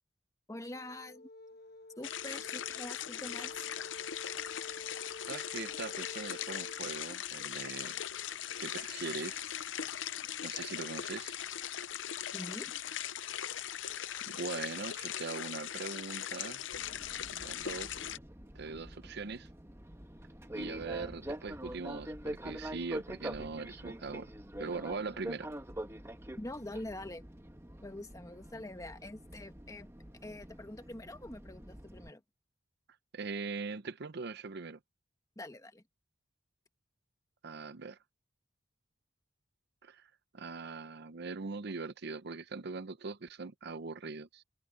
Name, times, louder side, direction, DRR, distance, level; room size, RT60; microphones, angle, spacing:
voice 1, 0.5-1.3 2.0-3.7 12.3-12.7 26.4-27.2 27.8-29.9 30.2-32.2 35.4-35.8, left 1 dB, 15° left, 1.3 m, -45 dB
sound 1, 0.7-6.8, left 2 dB, 55° left, 1.2 m, -49 dB
sound 2, 2.0-18.2, left 10 dB, 75° left, 0.7 m, -40 dB
voice 2, 5.3-8.0 8.6-9.4 10.4-11.4 14.3-16.6 17.3-18.0 18.5-19.5 20.5-24.3 24.6-25.5 33.1-34.8 37.4-38.0 39.8-40.1 40.3-44.4, right 4 dB, 60° right, 0.7 m, -41 dB
Fixed-wing aircraft airplane, 16.7-32.1, right 1 dB, 15° right, 1.4 m, -45 dB
head